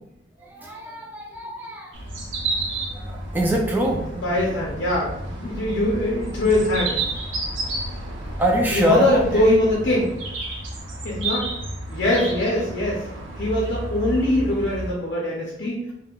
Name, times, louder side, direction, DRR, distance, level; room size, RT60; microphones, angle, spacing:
voice 1, 0.4-2.0 2.9-4.1 8.4-9.4, equal, 10° right, 0 dB, 0.3 m, -24 dB
sound 1, 1.9-14.9, right 2 dB, 85° right, 0.7 m, -31 dB
voice 2, 4.1-7.0 8.7-10.1 11.0-11.5 11.9-13.1 13.4-15.8, left 1 dB, 60° left, -4 dB, 0.6 m, -22 dB
3.5 x 2.1 x 2.3 m, 0.82 s
head